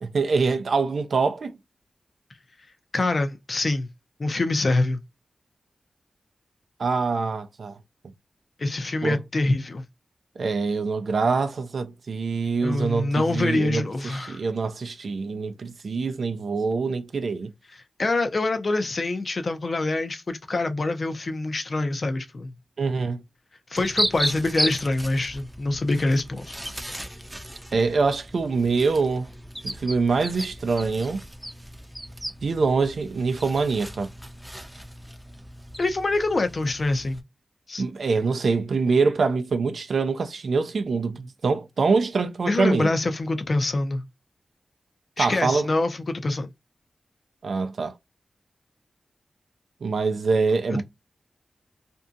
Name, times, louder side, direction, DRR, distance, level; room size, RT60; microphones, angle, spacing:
voice 1, 0.0-1.5 6.8-7.8 9.0-9.2 10.4-17.5 22.8-23.2 27.7-29.3 29.6-31.2 32.4-34.1 37.8-42.9 45.2-45.7 47.4-48.0 49.8-50.8, right 4 dB, 75° right, 0.4 m, -24 dB
voice 2, 2.9-3.9 4.2-5.0 8.6-9.8 12.6-14.4 18.0-22.5 23.7-26.6 35.8-37.2 37.7-37.8 42.5-44.0 45.2-46.5, left 2 dB, 55° left, 0.6 m, -25 dB
sound 1, 23.7-37.2, right 1 dB, 10° right, 0.5 m, -35 dB
2.6 x 2.3 x 2.5 m
cardioid pair, 50°, 0 cm